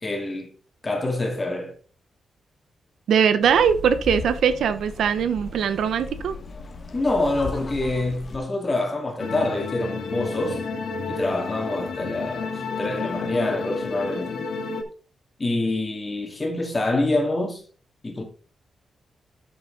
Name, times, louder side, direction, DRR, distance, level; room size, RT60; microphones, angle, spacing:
voice 1, 0.0-0.5 0.8-1.7 6.9-10.6 11.1-14.4 15.4-17.6 18.0-18.2, left 2 dB, 25° left, 2.5 m, -26 dB
voice 2, 3.1-6.4, right 7 dB, 90° right, 0.9 m, -21 dB
sound 1, 3.4-8.4, left 3 dB, 45° left, 1.5 m, -37 dB
sound 2, 9.2-14.8, left 4 dB, 75° left, 1.6 m, -31 dB
8.1 x 7.0 x 4.1 m
cardioid pair, 105°, 0 cm